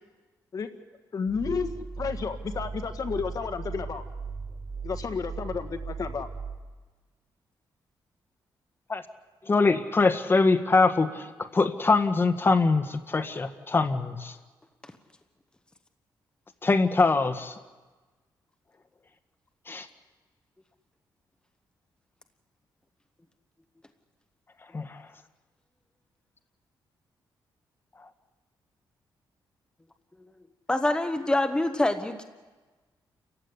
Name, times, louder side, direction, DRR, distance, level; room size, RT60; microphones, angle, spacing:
voice 1, 1.1-1.7 2.0-4.0 4.8-6.3, left 5 dB, 50° left, 8 dB, 1.8 m, -31 dB
sound 1, 1.3-6.6, right 5 dB, 5° right, 6.8 m, -37 dB
voice 2, 9.4-14.4 16.6-17.6 19.7-19.9 24.7-25.1 28.0-28.1, left 3 dB, 30° left, 8 dB, 1.7 m, -23 dB
voice 3, 30.7-32.2, left 1 dB, 10° left, 7 dB, 1.3 m, -26 dB
29.0 x 15.5 x 9.9 m, 1.3 s
cardioid pair, 110°, 8 cm